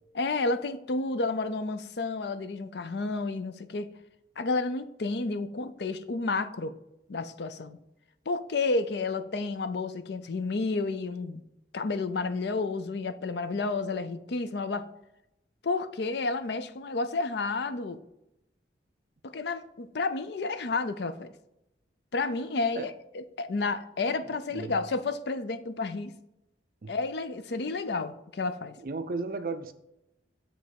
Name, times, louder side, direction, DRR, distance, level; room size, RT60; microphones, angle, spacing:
voice 1, 0.1-3.9 4.4-6.7 7.1-7.8 8.3-11.4 11.7-14.8 15.6-18.0 19.2-21.3 22.1-26.1 26.9-28.7, left 3 dB, 65° left, 0.5 m, -31 dB
voice 2, 28.8-29.7, right 3 dB, 50° right, 0.5 m, -34 dB
7.5 x 3.4 x 5.2 m
head